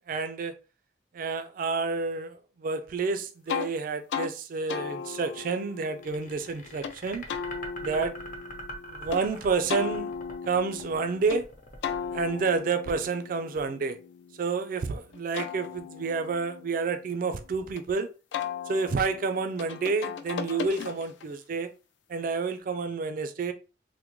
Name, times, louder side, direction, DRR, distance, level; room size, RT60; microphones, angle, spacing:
voice 1, 0.1-0.5 1.1-7.2 7.8-8.1 8.9-10.1 10.5-11.5 12.1-14.0 14.4-18.1 18.7-21.7 22.1-23.5, right 4 dB, 50° right, 0.3 m, -29 dB
sound 1, 3.5-3.7 4.1-4.3 4.7-6.9 7.3-9.2 9.7-11.4 11.8-14.7 15.1-17.8 18.3-21.3, left 7 dB, 85° left, 0.4 m, -37 dB
sound 2, 6.0-13.2, equal, 45° left, 0.6 m, -43 dB
3.5 x 2.1 x 2.9 m
head